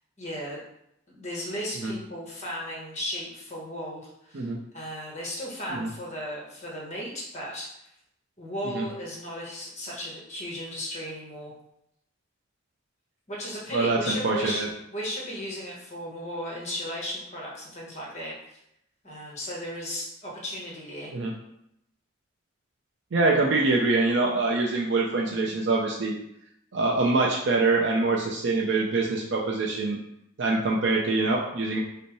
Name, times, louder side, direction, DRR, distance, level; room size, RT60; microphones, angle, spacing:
voice 1, 0.2-0.6 1.1-4.5 4.7-7.7 8.4-11.5 13.3-14.6 14.9-18.6 19.0-21.1, equal, 35° left, -4 dB, 1.2 m, -35 dB
voice 2, 13.7-14.7 21.1-21.3 23.1-26.1 26.7-30.0 30.4-31.8, right 3 dB, 70° right, -2 dB, 0.6 m, -24 dB
5.3 x 2.1 x 4.7 m, 0.79 s
head